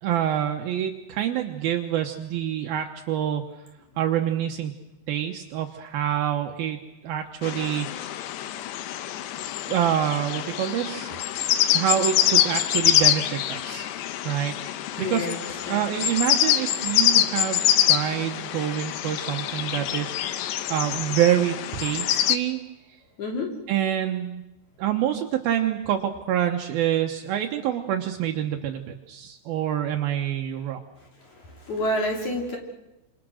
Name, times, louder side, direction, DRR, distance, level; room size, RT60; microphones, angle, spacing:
voice 1, 0.0-3.4 4.0-4.7 5.1-6.8 7.0-8.3 9.7-11.4 11.7-13.9 14.2-14.5 15.0-17.6 17.9-22.6 23.7-24.4 24.8-30.8, right 11 dB, 75° right, 4 dB, 2.2 m, -26 dB
sound 1, 7.4-22.4, left 12 dB, 75° left, 2.8 m, -25 dB
voice 2, 15.0-15.4 15.7-16.1 23.2-23.5 31.2-32.6, left 1 dB, 40° left, 1 dB, 4.0 m, -29 dB
28.5 x 27.0 x 6.4 m, 0.98 s
omnidirectional pair, 5.8 m